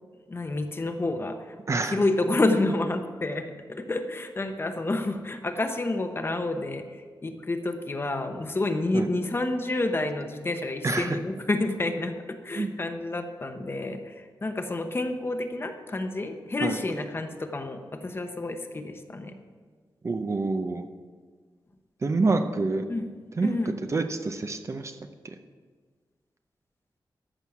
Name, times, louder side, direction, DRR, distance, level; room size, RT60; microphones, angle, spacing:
voice 1, 0.3-1.5 1.9-19.3 22.9-23.1 23.4-23.7, left 2 dB, 30° left, 6 dB, 0.9 m, -29 dB
voice 2, 1.7-2.0 8.9-9.1 10.8-11.2 12.6-12.7 16.6-16.8 20.0-20.9 22.0-22.8 23.4-23.5 23.9-25.0 25.2-25.3, right 3 dB, 35° right, 7 dB, 0.7 m, -27 dB
14.0 x 6.3 x 7.2 m, 1.5 s
wide cardioid pair, 170°, 8 cm